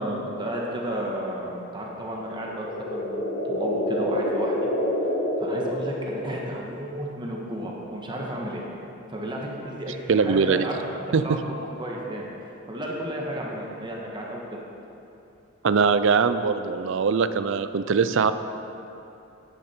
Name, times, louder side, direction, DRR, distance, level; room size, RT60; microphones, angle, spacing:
voice 1, 0.0-3.2 3.4-4.7 5.4-8.6 9.1-12.2 12.7-14.6, right 1 dB, 25° right, -2 dB, 1.4 m, -33 dB
sound 1, 2.2-6.6, left 1 dB, 70° left, 2.0 m, -27 dB
voice 2, 10.1-10.7 11.1-11.4 15.6-18.3, right 5 dB, 65° right, 11 dB, 0.5 m, -21 dB
10.0 x 10.0 x 4.4 m, 2.8 s
head